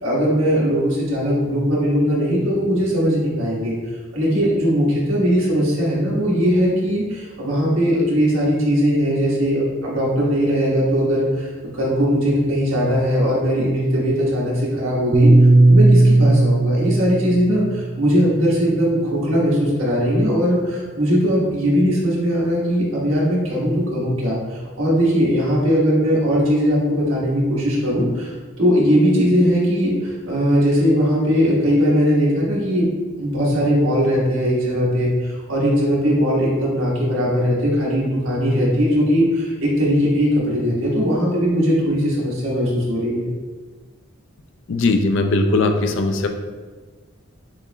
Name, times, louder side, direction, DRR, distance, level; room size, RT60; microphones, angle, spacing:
voice 1, 0.0-3.7 4.1-11.5 11.8-15.3 15.7-32.9 33.2-43.3, equal, 85° right, -5 dB, 1.4 m, -19 dB
Piano, 15.1-19.6, right 2 dB, 35° right, 0.4 m, -16 dB
voice 2, 44.7-46.3, left 2 dB, 65° left, 6 dB, 0.4 m, -19 dB
6.9 x 3.0 x 2.2 m, 1.4 s
head